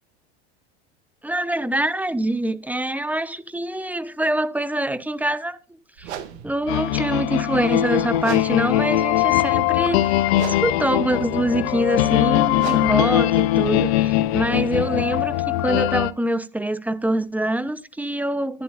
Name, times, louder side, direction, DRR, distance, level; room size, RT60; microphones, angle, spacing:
voice 1, 1.2-5.6 6.0-6.1 6.4-18.6, right 1 dB, 5° right, 1.0 m, -25 dB
sound 1, 6.0-14.7, right 9 dB, 85° right, 2.4 m, -40 dB
sound 2, 6.7-16.1, left 14 dB, 75° left, 0.8 m, -21 dB
11.5 x 11.0 x 2.6 m
supercardioid pair, 105°, 32 cm